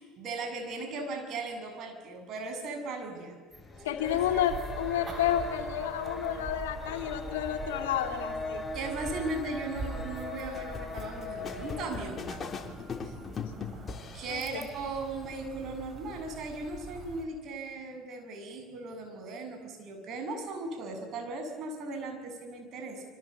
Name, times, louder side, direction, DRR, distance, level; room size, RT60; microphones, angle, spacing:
voice 1, 0.0-3.3 4.1-4.4 8.7-12.6 13.0-13.1 14.1-23.0, right 2 dB, 55° right, 5 dB, 7.5 m, -37 dB
sound 1, 3.5-12.1, left 2 dB, 15° left, 7.8 m, -40 dB
voice 2, 3.8-8.6 14.3-14.4, left 11 dB, 85° left, 5 dB, 3.0 m, -30 dB
sound 2, 4.0-17.3, right 4 dB, 35° right, 5.2 m, -44 dB
sound 3, 10.5-14.9, left 6 dB, 35° left, 3.5 m, -40 dB
27.0 x 25.0 x 8.2 m, 1.4 s
hypercardioid pair, 80°, 0 cm